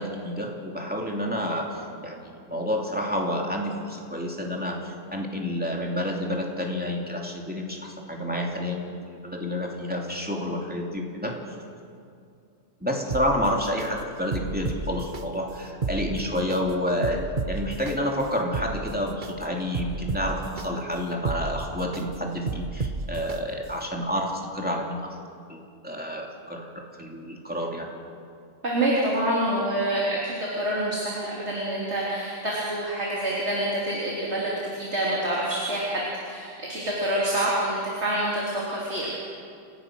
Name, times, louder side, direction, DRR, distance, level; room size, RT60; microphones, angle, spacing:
voice 1, 0.0-11.5 12.8-25.1 25.5-27.9, equal, 10° right, -1 dB, 2.8 m, -29 dB
sound 1, 13.1-13.9 14.3-15.2 15.7-16.6 17.0-17.9 18.4-19.3 19.7-20.7 21.1-22.0 22.5-23.4 23.8-23.9, right 4 dB, 45° right, 1.2 m, -32 dB
voice 2, 28.6-39.2, right 1 dB, 70° right, -5 dB, 3.7 m, -27 dB
28.5 x 17.5 x 6.2 m, 2.4 s
omnidirectional pair, 1.2 m